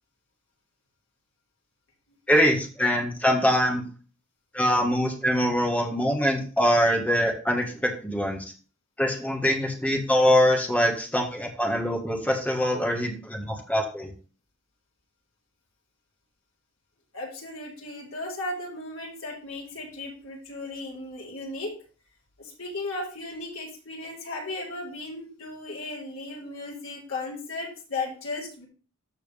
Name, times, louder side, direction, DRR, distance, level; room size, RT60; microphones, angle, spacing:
voice 1, 2.3-3.8 4.5-8.4 9.0-14.1, equal, 5° left, 1 dB, 1.7 m, -23 dB
voice 2, 17.1-21.7 22.4-28.7, left 2 dB, 70° left, -3 dB, 3.7 m, -36 dB
14.0 x 4.7 x 3.5 m, 0.39 s
head